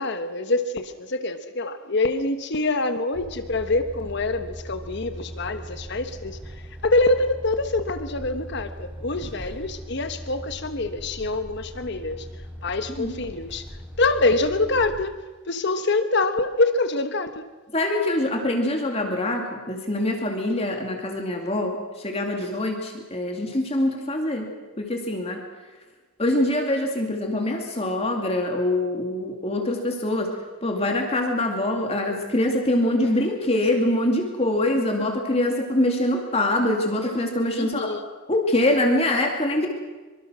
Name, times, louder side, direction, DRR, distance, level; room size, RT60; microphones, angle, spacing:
voice 1, 0.0-12.3 12.6-13.6 14.0-15.2 15.5-17.5 37.5-38.1, left 2 dB, 55° left, 9 dB, 1.1 m, -25 dB
Truck, 3.1-15.1, equal, 10° right, 4.0 m, -39 dB
voice 2, 17.7-24.5 24.8-25.4 26.2-37.9 38.3-39.7, left 1 dB, 30° left, 2 dB, 2.4 m, -24 dB
24.5 x 24.5 x 6.2 m, 1.3 s
head